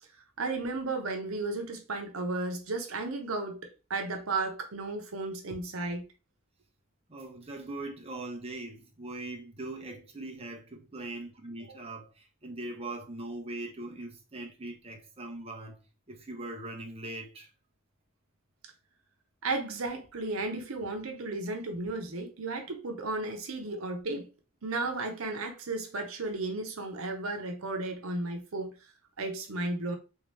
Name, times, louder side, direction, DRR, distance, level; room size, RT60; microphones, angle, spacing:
voice 1, 0.4-6.0 19.4-24.3 24.6-28.7 29.2-30.0, right 2 dB, 85° right, 0.8 m, -34 dB
voice 2, 7.1-15.8 16.1-17.5 23.7-23.8, right 2 dB, 30° right, 0.7 m, -41 dB
3.5 x 2.8 x 3.2 m
head